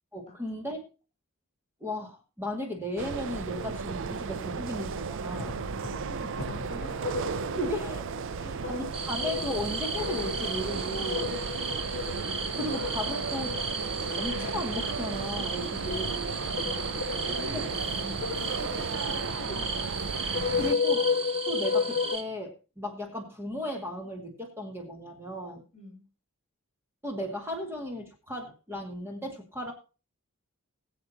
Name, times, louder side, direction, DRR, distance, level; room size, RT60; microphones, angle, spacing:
voice 1, 0.1-0.8 1.8-5.6 7.6-8.0 8.4-11.4 12.5-13.6 14.2-16.3 20.6-21.0 21.5-25.6 27.0-29.7, left 1 dB, 10° right, 1 dB, 2.2 m, -35 dB
sound 1, 3.0-20.8, right 5 dB, 60° right, 0.5 m, -34 dB
sound 2, 5.2-22.2, left 6 dB, 45° left, 0.6 m, -35 dB
voice 2, 5.9-7.1 8.4-8.6 16.4-20.2 20.5-20.8 25.7-26.1, left 1 dB, 30° left, 4 dB, 3.3 m, -48 dB
sound 3, 8.9-22.2, right 3 dB, 25° right, 1.5 m, -36 dB
21.5 x 7.7 x 2.9 m, 0.33 s
head